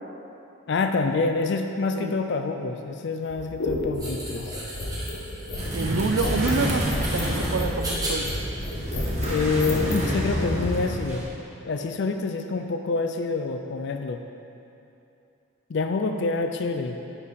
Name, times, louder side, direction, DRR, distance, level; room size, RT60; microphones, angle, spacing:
voice 1, 0.7-4.5 9.3-11.3 11.6-14.2 15.7-17.1, left 3 dB, 55° left, 5 dB, 0.4 m, -27 dB
sound 1, 3.2-10.1, left 1 dB, 75° left, 1.3 m, -32 dB
sound 2, 3.9-9.6, right 1 dB, 20° right, 1.2 m, -36 dB
sound 3, 5.6-11.3, equal, 35° right, 1.2 m, -29 dB
voice 2, 5.7-8.3 16.1-16.2, right 4 dB, 85° right, 7 dB, 0.5 m, -28 dB
9.8 x 4.6 x 5.1 m, 2.7 s
head